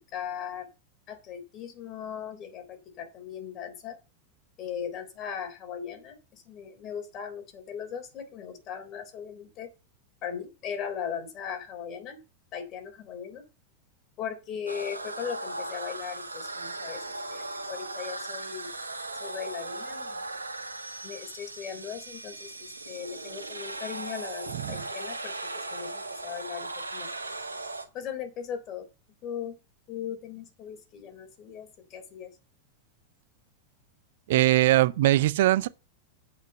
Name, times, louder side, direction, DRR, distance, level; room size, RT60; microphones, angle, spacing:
voice 1, 0.1-0.7 1.1-4.0 4.6-9.7 10.2-12.2 12.5-13.4 14.2-18.7 19.2-20.3 21.0-27.3 27.9-28.9 29.2-29.6 29.9-32.3, left 8 dB, 35° left, 3.7 m, -38 dB
sound 1, 14.7-27.8, right 2 dB, 80° right, 1.3 m, -38 dB
voice 2, 24.5-24.8 34.3-35.7, right 15 dB, 55° right, 0.5 m, -21 dB
8.1 x 5.9 x 7.1 m
figure-of-eight pair, 90°, 0 cm